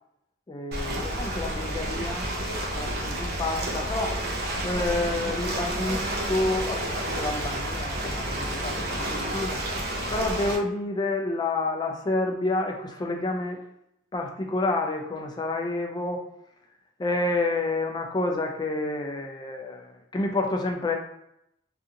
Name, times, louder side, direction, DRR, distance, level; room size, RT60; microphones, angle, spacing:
voice 1, 0.5-2.3 2.7-4.2 4.6-9.6 10.1-13.6 14.1-16.2 17.0-21.0, left 2 dB, 20° left, 2 dB, 0.3 m, -29 dB
Ocean, 0.7-10.6, right 1 dB, 50° right, 0.5 m, -30 dB
2.5 x 2.4 x 2.7 m, 0.80 s
head